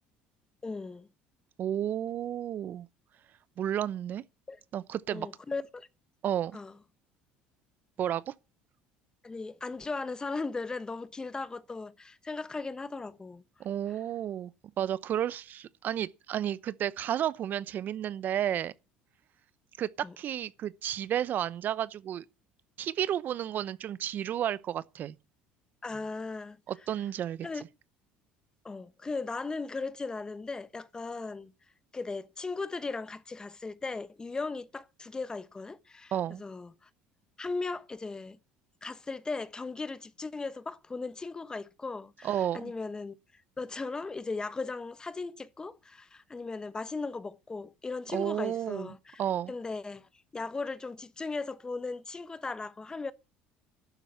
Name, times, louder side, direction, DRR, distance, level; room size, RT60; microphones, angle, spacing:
voice 1, 0.6-1.1 4.5-4.6 5.1-5.9 6.5-6.7 9.2-13.4 20.0-20.1 25.8-26.6 27.4-27.6 28.6-31.5 31.9-36.1 36.4-36.9 37.4-38.4 38.8-43.2 43.6-49.2 49.5-53.1, left 3 dB, 20° left, 1.1 m, -37 dB
voice 2, 1.6-2.9 3.6-4.2 4.7-5.3 6.2-6.6 8.0-8.3 13.6-14.5 14.8-18.7 19.8-22.2 22.8-25.2 26.7-27.5 36.1-36.4 42.2-42.7 48.1-49.5, right 10 dB, 50° right, 0.8 m, -32 dB
12.0 x 9.9 x 9.4 m
supercardioid pair, 95°, 4 cm